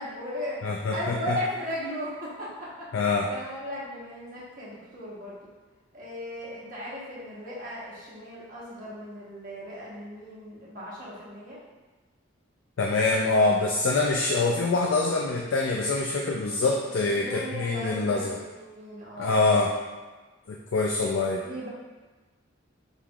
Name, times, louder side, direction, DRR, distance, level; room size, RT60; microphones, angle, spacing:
voice 1, 0.0-0.6 0.9-2.9 3.3-5.4 5.9-11.6 17.1-19.6 20.9-21.7, equal, 40° right, -7 dB, 1.1 m, -37 dB
voice 2, 0.6-1.4 2.9-3.3 12.8-18.4 19.2-19.7 20.5-21.4, left 3 dB, 75° left, -1 dB, 0.4 m, -25 dB
5.4 x 3.2 x 2.4 m, 1.3 s
head